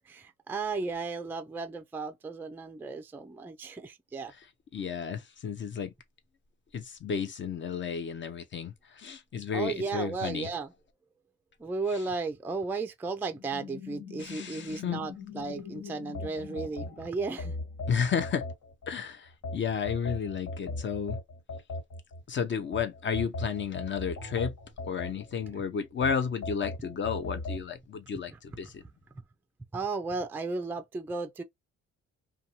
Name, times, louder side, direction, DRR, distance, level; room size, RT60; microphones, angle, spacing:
voice 1, 0.1-4.3 9.5-10.7 11.6-17.5 28.3-28.4 29.7-31.4, right 4 dB, 5° right, 0.3 m, -34 dB
voice 2, 4.7-5.9 6.7-10.5 14.2-15.0 17.9-18.4 18.9-21.2 22.3-24.5 24.8-28.8, left 6 dB, 40° left, 0.6 m, -32 dB
sound 1, 13.3-17.7, left 8 dB, 90° left, 1.3 m, -45 dB
sound 2, 16.1-18.9 19.4-22.2 22.7-25.5 26.0-27.6, left 2 dB, 70° left, 1.6 m, -37 dB
2.6 x 2.3 x 2.9 m
cardioid pair, 90°, 30 cm